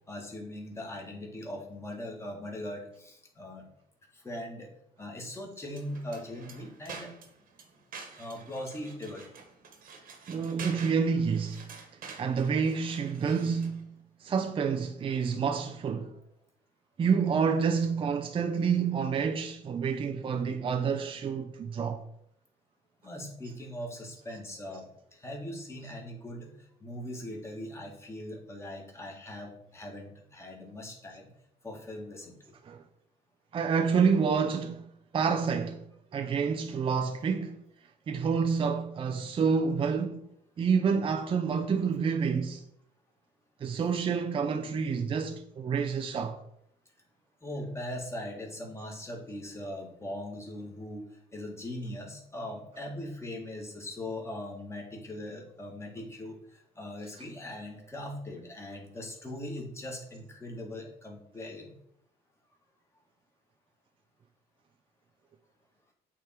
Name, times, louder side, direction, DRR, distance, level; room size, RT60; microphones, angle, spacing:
voice 1, 0.1-3.7 4.1-4.7 5.0-7.1 8.2-9.3 23.0-31.3 31.6-32.4 41.5-41.9 43.8-44.0 47.4-51.0 51.3-61.7, left 1 dB, 15° left, 1.9 m, -40 dB
sound 1, 5.7-13.8, right 5 dB, 55° right, 1.4 m, -48 dB
voice 2, 10.3-11.7 12.2-13.9 14.2-16.2 17.0-22.0 32.6-32.8 33.5-34.9 35.1-35.8 36.1-37.6 38.1-40.3 40.6-42.6 43.6-46.4, right 6 dB, 30° right, 0.5 m, -28 dB
8.4 x 3.7 x 4.4 m
cardioid pair, 110°, 17 cm